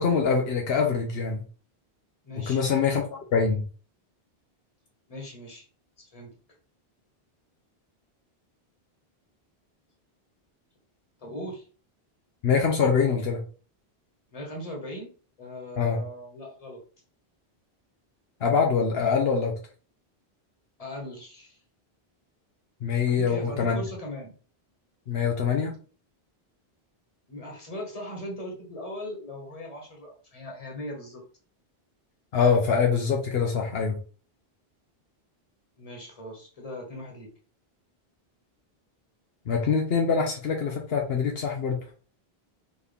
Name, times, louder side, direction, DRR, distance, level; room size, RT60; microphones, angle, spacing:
voice 1, 0.0-1.4 2.5-3.0 3.3-3.6 12.4-13.4 15.8-16.0 18.4-19.5 22.8-23.8 25.1-25.7 32.3-34.0 39.5-41.8, left 6 dB, 75° left, 1 dB, 1.0 m, -24 dB
voice 2, 2.2-2.6 5.1-5.7 6.0-6.3 11.2-11.7 14.3-15.1 15.4-16.8 20.8-21.6 23.1-24.3 27.3-31.2 35.8-37.3, left 1 dB, 35° left, 0 dB, 1.4 m, -39 dB
4.4 x 2.8 x 3.4 m, 0.39 s
omnidirectional pair, 1.1 m